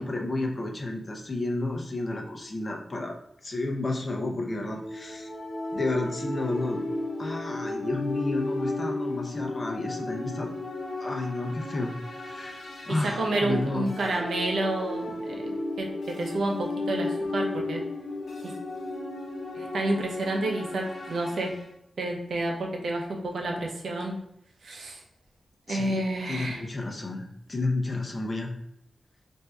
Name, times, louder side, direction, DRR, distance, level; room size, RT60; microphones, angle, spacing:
voice 1, 0.0-3.2 3.4-5.3 5.7-6.8 7.2-10.5 11.0-11.9 12.3-12.6 12.9-13.9 25.7-28.5, left 2 dB, 35° left, 1 dB, 0.5 m, -31 dB
sound 1, 4.4-21.7, left 2 dB, 75° left, 0.7 m, -34 dB
voice 2, 13.0-15.2 15.4-17.8 18.4-18.5 19.5-21.5 22.0-24.1 24.6-25.0 25.7-26.6, right 2 dB, 85° right, 0 dB, 0.6 m, -29 dB
4.3 x 2.6 x 2.3 m, 0.75 s
wide cardioid pair, 130°, 0 cm